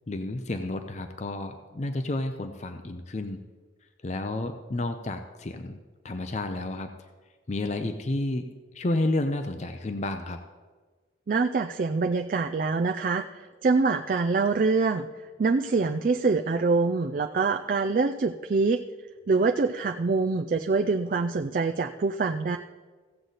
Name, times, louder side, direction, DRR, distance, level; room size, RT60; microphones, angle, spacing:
voice 1, 0.1-3.4 4.0-5.8 6.0-6.9 7.5-8.5 8.7-10.4, left 2 dB, 35° left, 7 dB, 0.5 m, -31 dB
voice 2, 11.3-15.1 15.4-18.8 19.3-22.6, right 4 dB, 45° right, 5 dB, 0.3 m, -25 dB
16.0 x 7.8 x 4.0 m, 1.4 s
head